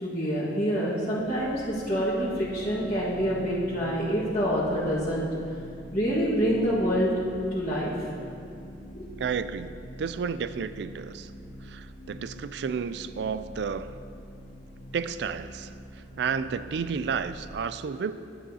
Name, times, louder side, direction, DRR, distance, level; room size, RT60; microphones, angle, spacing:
voice 1, 0.0-5.3 5.9-7.1 7.5-7.9 8.9-9.1, equal, 30° left, -12 dB, 1.6 m, -26 dB
sound 1, 1.1-17.5, equal, 60° left, 1.7 m, -45 dB
voice 2, 9.2-11.3 11.6-14.0 14.9-15.7 16.2-18.1, right 6 dB, 65° right, 13 dB, 0.3 m, -31 dB
11.0 x 10.5 x 2.8 m, 2.5 s
head